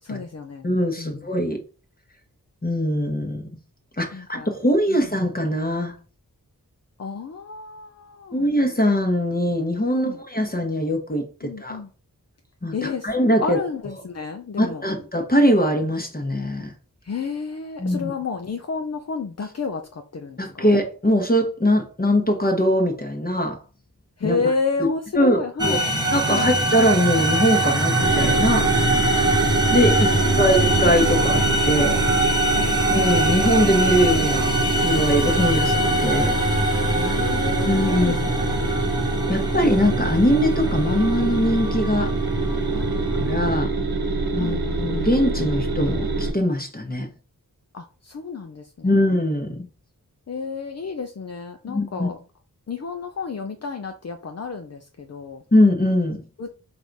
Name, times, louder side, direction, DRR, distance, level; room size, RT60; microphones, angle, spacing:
voice 1, 0.0-0.7 1.0-1.2 4.1-4.5 4.9-5.0 7.0-8.5 9.9-10.2 11.4-11.9 12.7-13.1 13.4-14.9 17.0-20.7 24.2-25.9 26.3-26.5 30.3-31.2 32.5-32.8 36.9-38.6 42.7-43.4 43.8-43.9 44.2-44.6 47.7-48.9 50.3-52.2 52.7-55.4 56.4-56.5, left 4 dB, 45° left, 0.6 m, -31 dB
voice 2, 0.6-1.6 2.6-3.4 4.0-5.9 8.3-11.3 11.6-11.8 12.6-13.6 14.6-16.7 17.8-18.1 20.4-23.6 24.2-24.4 25.1-25.8 26.1-28.7 29.7-32.0 32.9-34.5 34.8-36.4 37.6-38.2 39.3-42.1 43.2-43.8 44.3-47.1 48.8-49.7 51.7-52.1 55.5-56.2, equal, 25° left, 1.2 m, -21 dB
sound 1, 25.6-43.6, right 1 dB, 10° right, 1.3 m, -23 dB
sound 2, 28.0-46.3, right 3 dB, 90° right, 1.1 m, -25 dB
4.0 x 2.7 x 4.6 m
cardioid pair, 50°, 36 cm